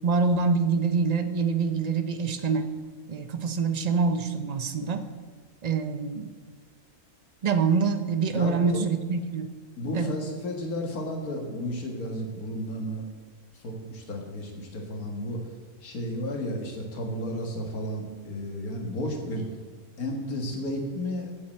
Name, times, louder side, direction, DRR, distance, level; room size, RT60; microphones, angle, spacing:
voice 1, 0.0-2.7 3.1-5.1 5.6-6.3 7.4-9.5 9.9-10.1, right 5 dB, 55° right, 9 dB, 0.4 m, -25 dB
voice 2, 8.3-8.8 9.8-13.1 13.5-15.4 15.8-19.5 20.0-21.3, left 1 dB, 75° left, 2 dB, 2.1 m, -33 dB
7.7 x 7.3 x 7.7 m, 1.5 s
omnidirectional pair, 1.6 m